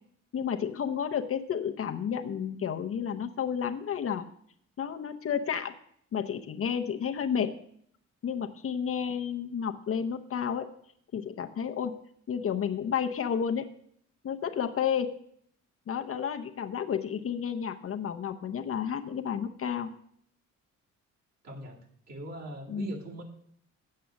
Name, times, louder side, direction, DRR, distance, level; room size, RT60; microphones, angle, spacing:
voice 1, 0.3-4.2 4.8-5.7 6.1-7.5 8.2-10.7 11.1-11.9 12.3-13.6 14.2-15.1 15.9-19.9 22.7-22.9, left 7 dB, 45° left, 6 dB, 0.7 m, -31 dB
voice 2, 21.4-23.2, right 1 dB, 60° right, -2 dB, 2.4 m, -41 dB
7.6 x 7.5 x 7.0 m, 0.67 s
cardioid pair, 90°, 30 cm